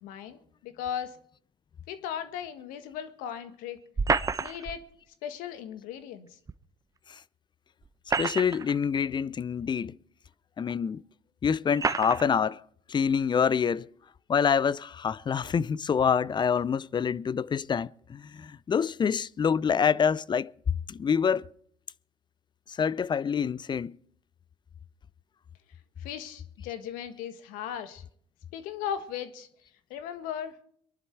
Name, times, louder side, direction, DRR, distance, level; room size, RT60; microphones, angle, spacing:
voice 1, 0.0-1.2 1.9-3.8 4.4-4.8 5.2-6.4 26.0-28.0 28.5-29.5 29.9-30.6, left 9 dB, 75° left, 1.6 m, -37 dB
sound 1, 4.0-4.8 6.5-6.6 7.8-8.8 9.6-9.7 10.7-10.8 11.8-12.3, right 4 dB, 25° right, 0.7 m, -28 dB
voice 2, 8.2-10.0 10.6-11.0 11.4-12.6 12.9-13.9 14.3-20.5 20.9-21.5 22.7-24.0, left 7 dB, 30° left, 0.5 m, -26 dB
23.5 x 11.0 x 4.6 m
hypercardioid pair, 65°, 14 cm